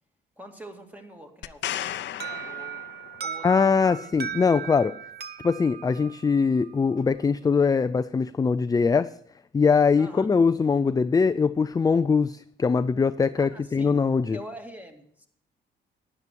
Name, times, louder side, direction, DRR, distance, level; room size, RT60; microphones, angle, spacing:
voice 1, 0.4-2.8 3.2-4.1 7.4-7.5 10.0-10.3 13.4-14.0 14.3-15.3, equal, 10° right, 4 dB, 2.2 m, -45 dB
sound 1, 1.4-3.4 7.1-7.2, left 12 dB, 65° left, 0.6 m, -35 dB
Alarm, 2.2-7.0, right 7 dB, 55° right, 0.9 m, -38 dB
voice 2, 3.4-4.9 5.4-9.1 9.5-14.4, left 5 dB, 20° left, 12 dB, 0.4 m, -22 dB
12.0 x 9.9 x 4.6 m, 0.66 s
cardioid pair, 90°, 20 cm